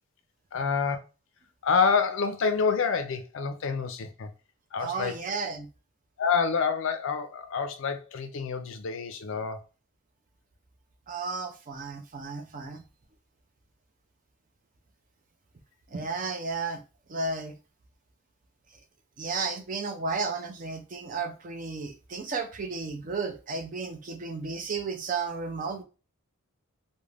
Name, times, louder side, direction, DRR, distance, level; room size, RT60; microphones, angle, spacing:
voice 1, 0.5-1.0 1.6-4.3 4.7-5.1 6.2-9.6, left 5 dB, 60° left, 0.4 m, -27 dB
voice 2, 4.8-5.7 11.1-12.8 15.9-16.8 17.1-17.5 19.2-25.8, right 4 dB, 35° right, 0.4 m, -33 dB
2.4 x 2.1 x 3.1 m
head